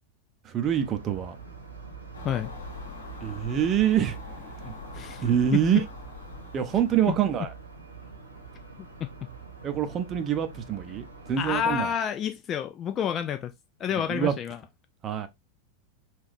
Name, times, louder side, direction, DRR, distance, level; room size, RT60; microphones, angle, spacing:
voice 1, 0.4-1.4 3.2-4.2 5.2-5.8 6.5-7.5 9.6-11.9 14.1-14.3 15.0-15.3, right 9 dB, 30° right, 0.7 m, -25 dB
sound 1, 0.6-11.8, right 4 dB, 80° right, 1.0 m, -45 dB
Car passing by / Engine, 2.1-7.1, left 3 dB, 70° left, 1.3 m, -43 dB
voice 2, 4.9-5.2 7.1-7.2 11.4-13.5 13.8-14.6, left 8 dB, 30° left, 0.3 m, -29 dB
3.5 x 2.6 x 3.4 m
figure-of-eight pair, 90°, 0 cm